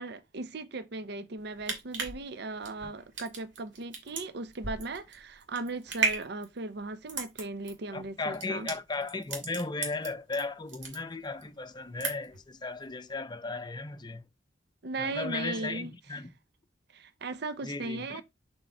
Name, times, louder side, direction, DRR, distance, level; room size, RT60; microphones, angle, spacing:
voice 1, 0.0-8.7 14.8-15.9 16.9-18.2, right 3 dB, 65° right, 0.6 m, -37 dB
sound 1, 1.4-10.4 10.7-11.5 11.8-12.4 12.8-12.9, right 4 dB, 90° right, 2.3 m, -35 dB
voice 2, 7.9-14.2 15.0-16.3 17.6-18.2, left 3 dB, 25° left, 0.6 m, -36 dB
6.9 x 3.5 x 4.3 m
head